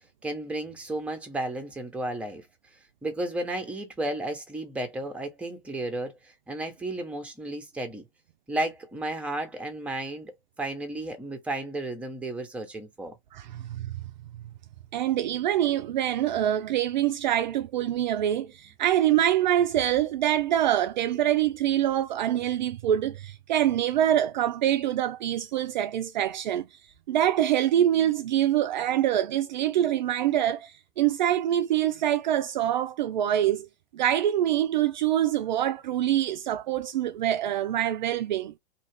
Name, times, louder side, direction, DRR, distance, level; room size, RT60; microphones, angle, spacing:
voice 1, 0.2-2.5 3.0-8.1 8.5-13.2, right 1 dB, 5° right, 0.8 m, -33 dB
voice 2, 13.3-14.0 14.9-26.7 27.1-33.7 33.9-38.5, right 11 dB, 50° right, 0.4 m, -25 dB
2.8 x 2.4 x 3.1 m
hypercardioid pair, 115°, 30 cm